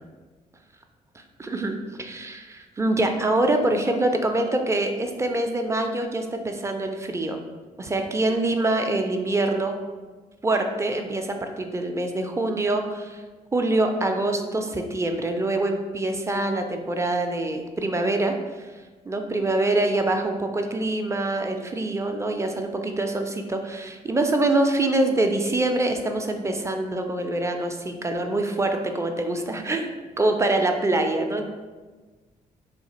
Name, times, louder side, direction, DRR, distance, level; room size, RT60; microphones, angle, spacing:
voice 1, 1.4-7.4 7.8-9.8 10.4-13.2 13.5-18.3 19.1-29.9 30.2-31.5, right 2 dB, 15° right, 5 dB, 0.4 m, -25 dB
3.2 x 2.4 x 2.8 m, 1.3 s
hypercardioid pair, 45°, 18 cm